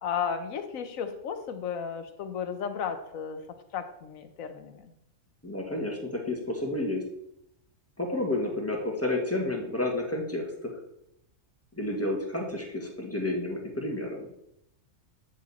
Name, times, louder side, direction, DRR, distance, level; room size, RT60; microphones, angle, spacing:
voice 1, 0.0-3.4 3.7-4.9, left 7 dB, 80° left, 8 dB, 1.2 m, -34 dB
voice 2, 5.4-7.0 8.0-10.7 11.7-14.3, left 1 dB, 10° left, 0 dB, 1.3 m, -30 dB
8.9 x 4.9 x 4.1 m, 0.77 s
omnidirectional pair, 1.4 m